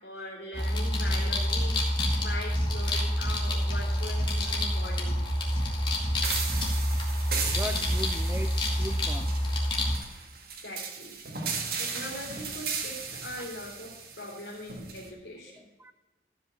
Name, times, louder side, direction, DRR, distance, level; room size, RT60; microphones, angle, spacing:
voice 1, 0.0-5.1 10.5-11.2 11.8-15.6, left 1 dB, 75° left, -4 dB, 3.0 m, -41 dB
sound 1, 0.5-10.0, equal, 25° left, 2.3 m, -27 dB
sound 2, 6.2-15.1, right 5 dB, 55° right, 1.8 m, -36 dB
voice 2, 7.5-9.4 13.4-13.5 15.5-15.9, equal, 10° right, 10 dB, 0.6 m, -39 dB
14.0 x 5.4 x 7.6 m, 1.2 s
head